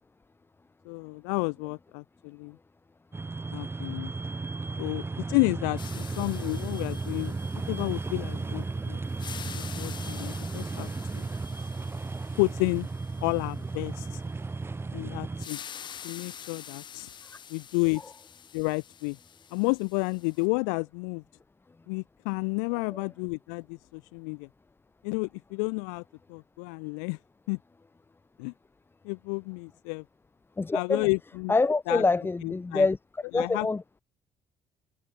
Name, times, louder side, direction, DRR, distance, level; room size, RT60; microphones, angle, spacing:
voice 1, 0.8-2.6 3.5-4.1 4.8-7.4 7.7-9.0 9.4-10.9 11.2-11.3 12.4-12.9 13.2-14.2 14.9-15.6 16.0-17.1 17.5-18.0 18.5-19.2 19.5-21.2 21.9-24.5 25.0-26.0 26.3-27.2 27.5-27.6 28.4-28.5 29.0-30.0 30.7-31.5 31.9-32.0 32.4-32.9 33.3-33.7, left 40 dB or more, 85° left, 0.5 m, -31 dB
sound 1, 3.1-15.5, right 3 dB, 25° right, 2.6 m, -34 dB
sound 2, 5.8-8.7 9.0-13.9 15.4-20.5, left 8 dB, 50° left, 2.8 m, -47 dB
voice 2, 30.6-31.1 31.5-33.0 33.3-33.8, left 3 dB, 20° left, 1.5 m, -25 dB
hypercardioid pair, 65°, 10 cm